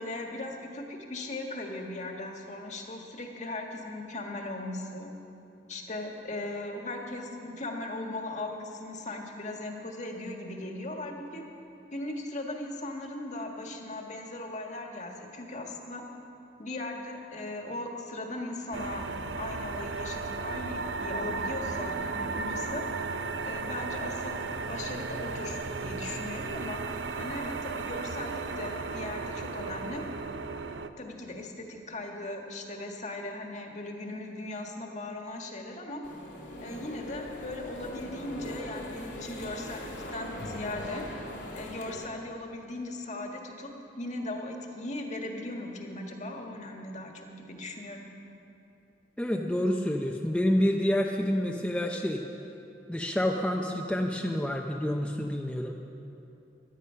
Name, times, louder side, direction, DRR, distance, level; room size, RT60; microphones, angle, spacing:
voice 1, 0.0-5.1 5.7-11.4 11.9-16.0 16.6-19.1 19.4-22.8 23.4-24.4 24.7-26.8 27.2-30.0 31.0-36.0 36.6-41.0 41.5-43.7 44.0-48.1, left 2 dB, 40° left, 2 dB, 1.6 m, -38 dB
sound 1, 18.7-30.9, right 4 dB, 85° right, 0.6 m, -35 dB
sound 2, 36.0-42.1, left 1 dB, 80° left, 2.4 m, -40 dB
voice 2, 49.2-52.2 52.9-55.7, left 1 dB, 5° left, 1 dB, 0.6 m, -28 dB
17.0 x 11.5 x 5.7 m, 2.8 s
head